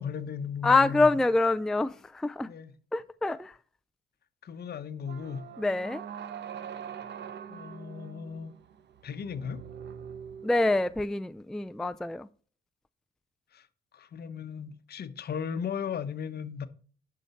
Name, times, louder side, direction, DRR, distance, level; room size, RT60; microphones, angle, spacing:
voice 1, 0.0-1.1 2.4-2.7 4.4-5.4 7.5-8.5 9.0-9.6 13.5-13.7 13.9-16.7, left 7 dB, 55° left, 1.0 m, -36 dB
voice 2, 0.6-2.5 2.9-3.6 5.6-6.0 10.4-12.3, left 3 dB, ahead, 0.3 m, -26 dB
sound 1, 5.0-11.1, right 8 dB, 60° right, 1.0 m, -43 dB
10.0 x 5.8 x 4.3 m
cardioid pair, 90°, 20 cm